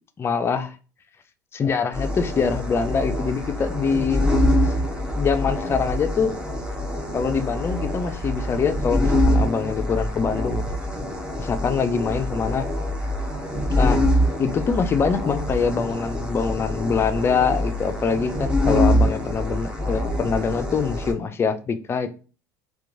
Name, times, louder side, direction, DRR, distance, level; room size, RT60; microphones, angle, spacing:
voice 1, 0.2-0.8 1.5-4.3 5.1-6.3 7.1-10.6 11.4-12.7 13.7-14.1 14.4-22.1, left 5 dB, 25° left, 0.4 m, -24 dB
sound 1, 1.9-21.1, left 1 dB, 10° right, 0.7 m, -24 dB
2.9 x 2.2 x 2.5 m
supercardioid pair, 95°, 9 cm